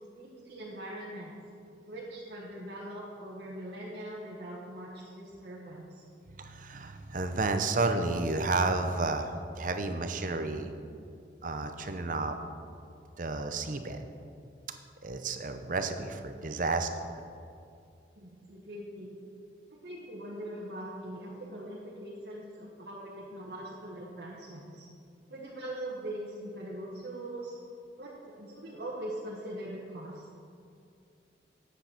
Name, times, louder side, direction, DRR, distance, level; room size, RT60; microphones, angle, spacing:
voice 1, 0.0-1.3 1.9-6.0 18.2-19.2 19.8-24.9 25.3-27.5 28.0-28.1 28.4-30.2, right 1 dB, 60° right, -6 dB, 1.4 m, -41 dB
voice 2, 6.4-10.7 11.4-12.4 13.2-14.0 15.0-16.9, right 3 dB, 45° right, 7 dB, 0.7 m, -31 dB
9.6 x 8.2 x 5.9 m, 2.5 s
head